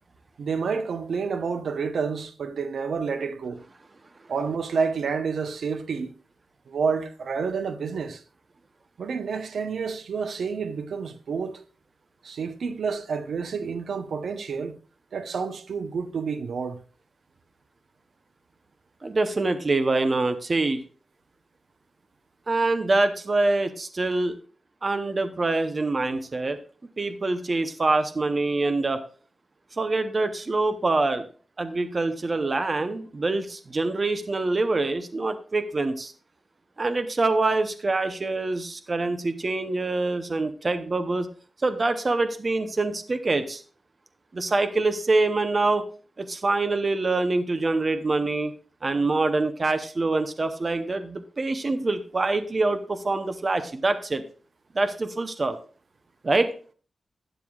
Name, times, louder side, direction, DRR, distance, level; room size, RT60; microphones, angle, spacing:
voice 1, 0.4-3.6 4.3-6.1 6.7-8.2 9.0-11.6 12.2-14.8 15.1-16.8, right 5 dB, 80° right, 0.8 m, -29 dB
voice 2, 19.0-20.8 22.5-24.4 24.8-26.6 27.0-29.0 29.8-31.2 31.6-36.1 36.8-41.3 41.6-43.6 44.3-45.9 46.2-48.5 48.8-54.2 54.7-55.6 56.2-56.5, right 3 dB, 30° right, 0.7 m, -25 dB
12.5 x 9.1 x 2.3 m
wide cardioid pair, 160°, 0 cm